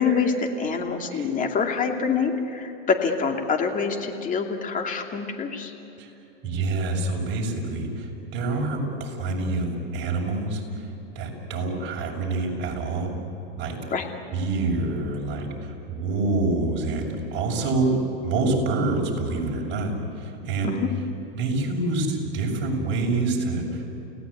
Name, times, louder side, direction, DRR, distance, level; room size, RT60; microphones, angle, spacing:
voice 1, 0.0-5.7 13.9-14.1 20.6-20.9, left 5 dB, 25° left, 3 dB, 2.6 m, -25 dB
voice 2, 6.4-10.9 11.1-13.1 13.6-13.8 14.3-20.7 21.4-24.0, right 2 dB, 35° right, -1 dB, 6.6 m, -27 dB
30.0 x 18.0 x 8.6 m, 3.0 s
supercardioid pair, 125°, 31 cm